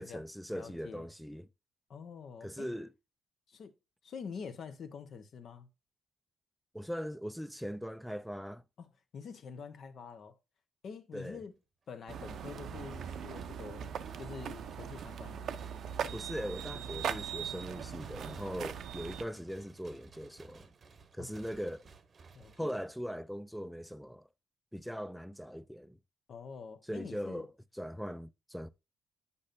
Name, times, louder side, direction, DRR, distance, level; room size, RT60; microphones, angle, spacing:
voice 1, 0.0-1.5 2.4-2.9 6.7-8.6 11.1-11.4 16.1-20.7 21.1-21.8 22.6-24.3 24.7-26.0 26.9-27.5 27.8-28.7, equal, ahead, 0.4 m, -40 dB
voice 2, 0.5-1.1 1.9-2.7 3.5-3.7 4.0-5.7 8.8-10.4 10.8-11.5 11.9-15.6 21.2-21.3 22.3-22.7 26.3-27.5, left 6 dB, 60° left, 1.1 m, -46 dB
sound 1, 12.1-23.3, right 4 dB, 40° right, 0.8 m, -58 dB
sound 2, 12.1-19.2, right 8 dB, 65° right, 0.6 m, -40 dB
8.6 x 5.4 x 2.6 m
cardioid pair, 90°, 0 cm